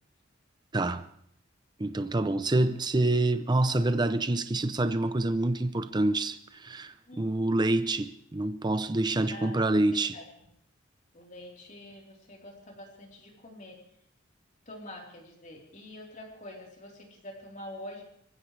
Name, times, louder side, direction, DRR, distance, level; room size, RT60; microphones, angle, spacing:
voice 1, 0.7-1.1 1.8-10.1, right 2 dB, 20° right, 0.6 m, -27 dB
voice 2, 9.3-10.5 11.1-13.8 14.7-18.0, left 1 dB, 40° left, 3.9 m, -46 dB
26.5 x 15.5 x 3.3 m
head